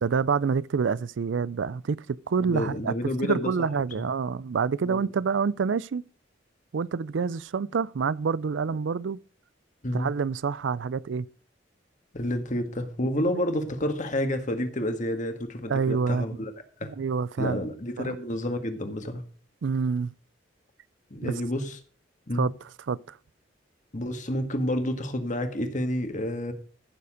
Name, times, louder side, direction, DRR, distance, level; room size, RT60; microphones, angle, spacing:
voice 1, 0.0-2.9 3.2-6.0 6.7-9.2 9.9-11.3 13.0-13.1 15.7-16.3 16.8-17.6 18.0-18.2 19.6-20.1 21.2-21.3 22.4-22.5 22.9-23.2, right 5 dB, 75° right, 0.4 m, -27 dB
voice 2, 2.5-3.5 4.0-4.1 4.8-5.1 9.8-10.1 12.1-16.5 16.8-16.9 17.4-19.2 21.1-21.8 22.3-22.5 23.9-26.5, left 1 dB, 45° left, 1.8 m, -29 dB
14.5 x 7.0 x 5.1 m
head